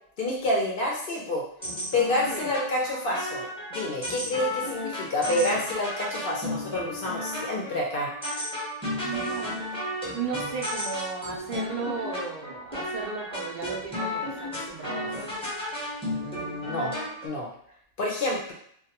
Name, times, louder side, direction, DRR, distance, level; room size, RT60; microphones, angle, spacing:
voice 1, 0.2-1.4 1.9-3.4 3.7-8.1 16.2-16.9 17.2-17.5 18.0-18.5, left 1 dB, 60° left, -2 dB, 0.6 m, -28 dB
sound 1, 1.6-17.3, left 1 dB, 5° left, 0.6 m, -33 dB
voice 2, 9.0-9.6 10.1-15.3, right 5 dB, 70° right, 0 dB, 0.4 m, -35 dB
2.2 x 2.2 x 2.8 m, 0.67 s
omnidirectional pair, 1.3 m